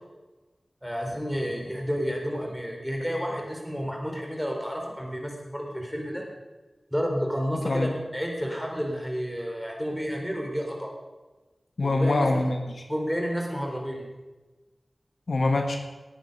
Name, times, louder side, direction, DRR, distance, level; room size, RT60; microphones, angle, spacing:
voice 1, 0.8-6.2 6.9-10.9 11.8-12.3 12.9-14.0, equal, ahead, 1 dB, 3.9 m, -30 dB
voice 2, 7.5-8.0 11.8-12.8 15.3-15.8, left 2 dB, 80° left, 4 dB, 1.5 m, -25 dB
18.5 x 9.1 x 5.4 m, 1.2 s
wide cardioid pair, 55°, 0 cm